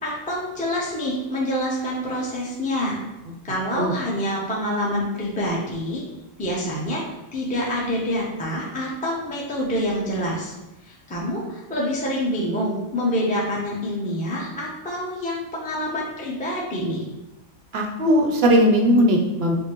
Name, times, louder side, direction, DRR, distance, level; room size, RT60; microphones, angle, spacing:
voice 1, 0.0-3.0 3.4-6.0 6.4-7.0 7.3-10.5 10.8-17.0, equal, 10° left, -4 dB, 0.4 m, -26 dB
voice 2, 17.7-19.6, equal, 60° right, 1 dB, 0.7 m, -18 dB
5.2 x 2.0 x 2.9 m, 0.97 s
omnidirectional pair, 1.4 m